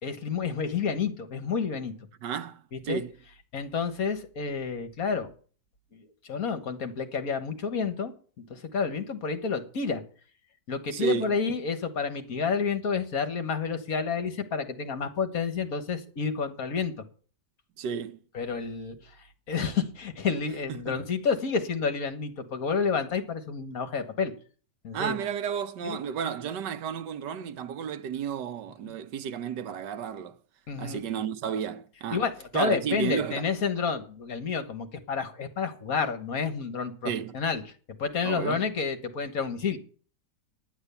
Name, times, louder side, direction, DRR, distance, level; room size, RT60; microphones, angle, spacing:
voice 1, 0.0-1.9 2.7-3.0 3.5-5.3 5.9-10.0 10.7-16.9 18.3-19.0 19.5-24.3 24.8-25.2 25.8-26.0 30.7-31.0 32.1-37.6 38.0-39.8, left 5 dB, 60° left, 1.8 m, -30 dB
voice 2, 2.2-3.1 10.9-11.4 17.8-18.2 20.7-21.0 24.9-30.4 30.8-32.2 32.5-33.5 37.0-37.4 38.2-38.6, right 7 dB, 85° right, 1.5 m, -32 dB
11.0 x 10.0 x 6.9 m
omnidirectional pair, 1.8 m